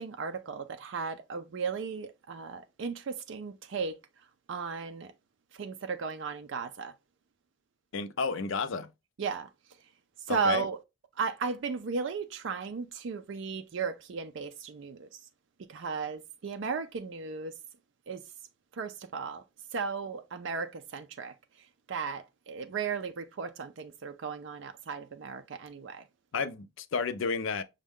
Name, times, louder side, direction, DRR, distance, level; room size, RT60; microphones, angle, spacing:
voice 1, 0.0-4.0 4.5-5.1 5.6-6.9 9.2-9.5 10.3-10.8 11.2-15.1 15.7-17.5 18.1-18.2 18.8-19.4 19.7-21.3 21.9-26.0, right 5 dB, 60° right, 0.4 m, -35 dB
voice 2, 7.9-8.9 10.3-10.6 26.3-27.6, left 4 dB, 65° left, 0.5 m, -31 dB
6.1 x 2.2 x 3.5 m
head